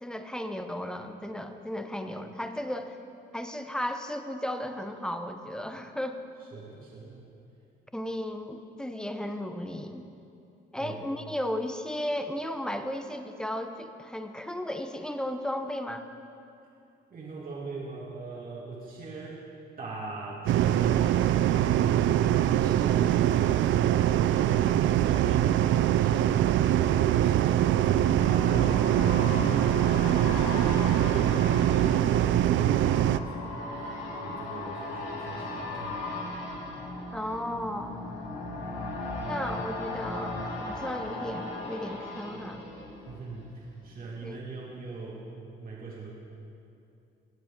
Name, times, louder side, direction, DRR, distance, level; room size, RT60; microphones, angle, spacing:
voice 1, 0.0-3.0 3.3-6.2 7.9-10.1 10.7-16.1 37.1-38.0 39.2-40.4 40.7-42.6 44.2-44.4, left 1 dB, 5° left, 7 dB, 0.7 m, -34 dB
voice 2, 6.4-7.3 10.8-11.0 17.1-19.4 19.8-23.7 24.1-26.3 26.7-33.9 34.2-36.1 43.1-45.3 45.6-46.1, right 3 dB, 45° right, -5 dB, 1.9 m, -42 dB
sound 1, 20.5-33.2, right 12 dB, 70° right, 0.4 m, -23 dB
sound 2, 26.5-43.7 44.0-44.1, left 2 dB, 80° left, 2.1 m, -37 dB
17.5 x 7.8 x 3.7 m, 2.7 s
cardioid pair, 90°, 20 cm